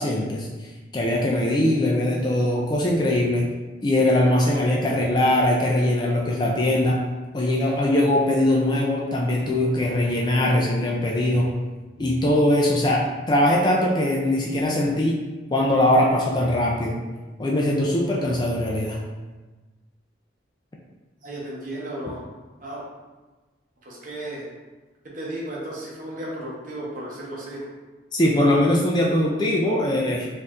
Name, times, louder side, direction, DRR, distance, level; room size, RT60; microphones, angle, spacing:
voice 1, 0.0-3.4 3.8-7.0 7.3-11.5 12.0-15.2 15.5-17.0 17.4-19.0 28.1-30.3, left 1 dB, 20° left, -2 dB, 0.3 m, -21 dB
voice 2, 21.2-22.2 22.6-22.8 23.8-24.4 25.1-27.6, right 1 dB, 45° right, -4 dB, 0.8 m, -34 dB
4.4 x 2.6 x 2.4 m, 1.2 s
head